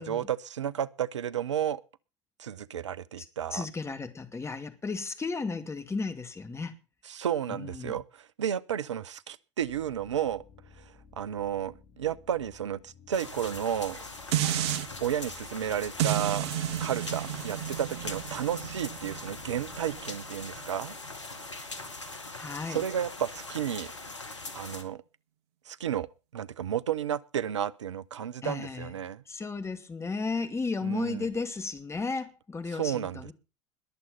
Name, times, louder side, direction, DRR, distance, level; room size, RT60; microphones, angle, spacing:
voice 1, 0.0-1.8 2.4-3.7 7.1-10.4 10.8-14.0 15.0-16.5 16.8-20.9 22.7-23.9 24.5-25.0 25.7-26.1 26.3-29.2 30.8-31.3 32.7-33.3, right 9 dB, 80° right, 0.8 m, -32 dB
voice 2, 3.5-6.8 7.5-8.0 22.3-22.8 28.4-28.9 29.3-33.3, left 4 dB, 20° left, 2.5 m, -34 dB
sound 1, 9.6-21.4, left 6 dB, 40° left, 4.6 m, -56 dB
sound 2, 13.1-24.8, left 3 dB, 90° left, 2.1 m, -42 dB
sound 3, 14.3-14.9 16.0-21.1 21.6-21.7, right 12 dB, 65° right, 1.2 m, -32 dB
21.0 x 7.8 x 5.7 m
hypercardioid pair, 80°, 15 cm